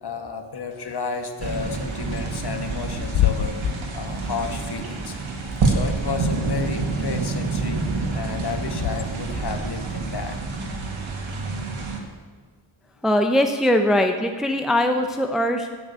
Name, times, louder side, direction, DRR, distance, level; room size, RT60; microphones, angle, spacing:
voice 1, 0.0-3.5 3.9-5.2 5.6-10.4, left 5 dB, 50° left, 6 dB, 1.5 m, -32 dB
Bird / Wind, 0.7-9.4, left 12 dB, 75° left, 0.6 m, -31 dB
sound 1, 1.4-12.0, right 3 dB, 70° right, 2.1 m, -27 dB
voice 2, 13.0-15.7, left 1 dB, ahead, 5 dB, 0.6 m, -21 dB
15.5 x 6.2 x 8.1 m, 1.5 s
wide cardioid pair, 120°, 49 cm